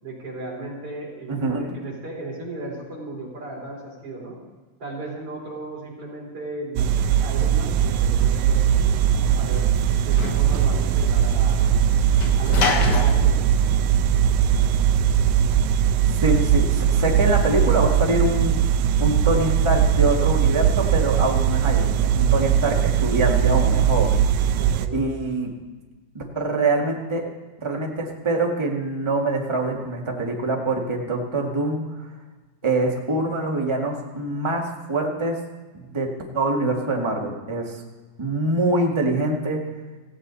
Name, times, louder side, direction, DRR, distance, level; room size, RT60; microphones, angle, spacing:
voice 1, 0.0-4.4 4.8-9.7 10.0-11.8 12.4-13.5 24.6-25.0, right 2 dB, 45° right, -4 dB, 5.3 m, -36 dB
voice 2, 1.3-1.6 16.2-18.5 19.0-24.3 24.9-25.5 26.1-27.2 27.6-31.8 32.6-35.4 35.7-36.1 36.3-37.8 38.2-39.6, right 2 dB, 15° right, -1 dB, 1.3 m, -24 dB
sound 1, 6.8-24.9, right 9 dB, 80° right, 1.8 m, -20 dB
Sliding door / Slam, 8.8-14.7, left 4 dB, 65° left, 1.0 m, -30 dB
17.0 x 16.0 x 4.1 m, 1.3 s
omnidirectional pair, 3.7 m